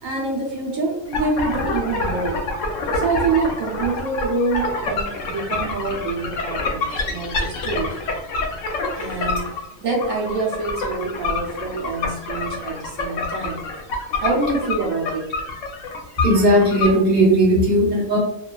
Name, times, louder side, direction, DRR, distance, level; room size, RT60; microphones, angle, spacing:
voice 1, 0.0-2.4 2.9-8.0 9.0-13.6 14.2-15.3, right 3 dB, 70° right, -2 dB, 0.9 m, -26 dB
sound 1, 1.1-16.9, left 3 dB, 65° left, 0.8 m, -27 dB
voice 2, 16.2-18.2, right 1 dB, 10° right, -6 dB, 0.6 m, -16 dB
3.0 x 2.3 x 2.2 m, 0.83 s
omnidirectional pair, 1.6 m